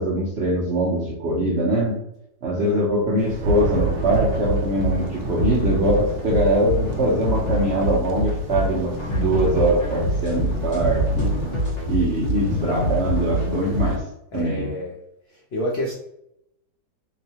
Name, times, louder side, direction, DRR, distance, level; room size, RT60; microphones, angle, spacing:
voice 1, 0.0-2.0 2.4-11.3 11.9-14.0 14.3-14.7, right 1 dB, 70° right, -4 dB, 0.6 m, -22 dB
Thunder, 3.2-14.0, right 1 dB, 85° right, 1.3 m, -32 dB
sound 1, 3.6-14.0, equal, 45° left, 1.2 m, -26 dB
voice 2, 14.3-14.9 15.3-15.9, left 1 dB, 80° left, -2 dB, 0.5 m, -28 dB
3.0 x 2.9 x 2.7 m, 0.79 s
omnidirectional pair, 1.9 m